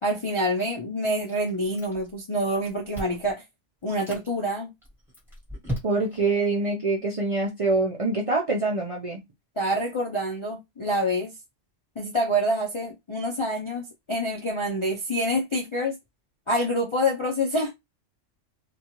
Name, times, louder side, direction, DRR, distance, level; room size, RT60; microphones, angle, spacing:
voice 1, 0.0-3.4 3.8-4.7 9.6-11.3 12.0-16.0 16.5-17.7, equal, 50° left, 0.3 m, -26 dB
Chewing mastication, 1.3-2.2 2.5-3.3 3.8-4.3 4.8-6.3, equal, ahead, 1.2 m, -36 dB
voice 2, 5.8-9.2, right 3 dB, 45° right, 0.4 m, -25 dB
2.4 x 2.3 x 2.9 m
omnidirectional pair, 1.2 m